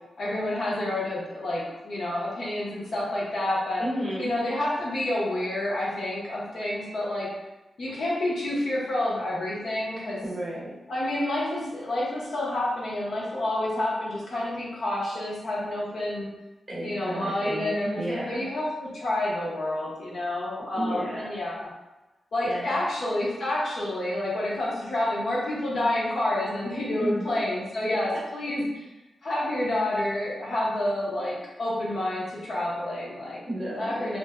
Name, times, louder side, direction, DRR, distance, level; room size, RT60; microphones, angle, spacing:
voice 1, 0.2-3.8 4.2-7.3 7.8-10.2 10.9-16.3 16.8-21.7 22.3-28.8 29.2-33.4 33.8-34.2, left 1 dB, 55° left, -6 dB, 0.8 m, -29 dB
voice 2, 3.8-4.3 10.2-10.7 16.7-18.5 20.7-21.3 22.4-22.8 27.0-27.2 33.5-34.2, right 1 dB, 20° right, -8 dB, 1.0 m, -32 dB
2.5 x 2.1 x 3.5 m, 1.0 s
wide cardioid pair, 160°, 0 cm